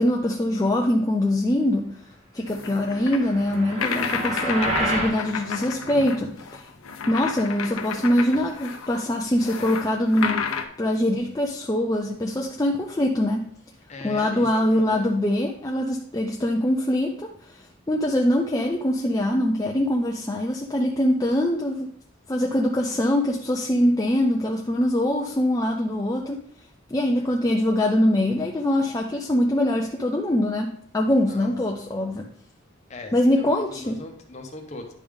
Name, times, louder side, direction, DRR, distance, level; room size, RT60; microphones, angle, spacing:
voice 1, 0.0-2.0 2.3-6.6 7.1-10.5 10.8-13.5 14.0-21.9 22.3-26.4 26.9-32.3 33.1-34.0, left 1 dB, 15° left, 0 dB, 0.4 m, -23 dB
sound 1, 2.5-10.7, left 6 dB, 85° left, 0.6 m, -32 dB
sound 2, 2.9-5.2, right 1 dB, 35° right, 1.1 m, -29 dB
voice 2, 13.9-15.2 27.2-27.3 31.3-31.9 32.9-34.9, left 2 dB, 35° left, 3 dB, 0.9 m, -40 dB
10.0 x 3.5 x 3.6 m, 0.63 s
head